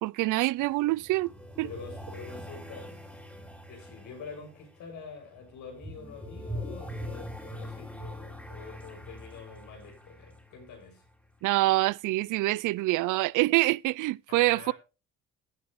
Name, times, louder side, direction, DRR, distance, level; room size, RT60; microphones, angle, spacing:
voice 1, 0.0-1.7 11.4-14.7, right 19 dB, 85° right, 0.5 m, -26 dB
sound 1, 0.6-11.3, equal, 5° left, 3.5 m, -43 dB
voice 2, 1.6-2.9 3.7-11.0 14.3-14.7, left 5 dB, 85° left, 6.5 m, -46 dB
15.5 x 8.5 x 3.1 m
cardioid pair, 90°, 30 cm